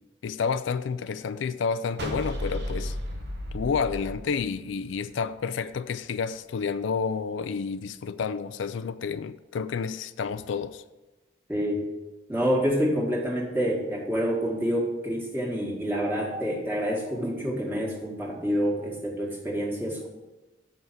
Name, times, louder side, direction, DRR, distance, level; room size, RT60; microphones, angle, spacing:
voice 1, 0.2-3.0 3.5-10.8, left 5 dB, 85° left, 0.4 m, -30 dB
sound 1, 2.0-5.2, equal, 60° right, 1.1 m, -34 dB
voice 2, 11.5-11.8 12.3-20.1, equal, 10° right, 1.8 m, -27 dB
7.8 x 5.6 x 5.9 m
head